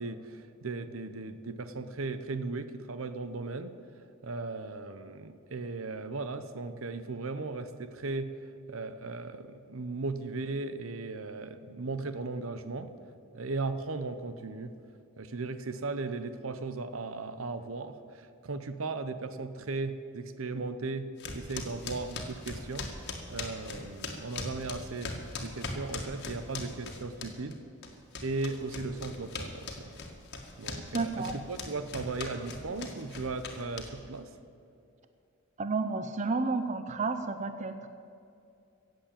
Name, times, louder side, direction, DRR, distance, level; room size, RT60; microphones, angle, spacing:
voice 1, 0.0-3.7 4.2-8.3 8.7-12.9 13.3-14.7 15.2-22.9 23.3-27.6 28.2-30.0 30.6-34.3, right 3 dB, 70° right, 11 dB, 0.8 m, -37 dB
sound 1, 21.2-27.6 27.8-34.2, left 3 dB, 55° left, 1.9 m, -40 dB
voice 2, 30.9-31.3 35.6-37.9, right 3 dB, 35° right, 9 dB, 0.6 m, -31 dB
16.0 x 7.8 x 8.9 m, 2.5 s
head